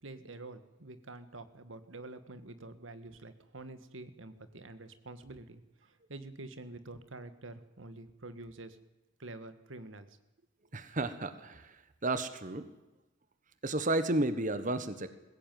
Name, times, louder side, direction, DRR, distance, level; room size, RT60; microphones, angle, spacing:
voice 1, 0.0-8.8 9.2-10.2, right 2 dB, 85° right, 11 dB, 1.7 m, -47 dB
voice 2, 10.7-11.8 12.0-12.7 13.6-15.1, right 2 dB, 40° right, 11 dB, 1.3 m, -32 dB
21.0 x 16.5 x 9.4 m, 1.0 s
head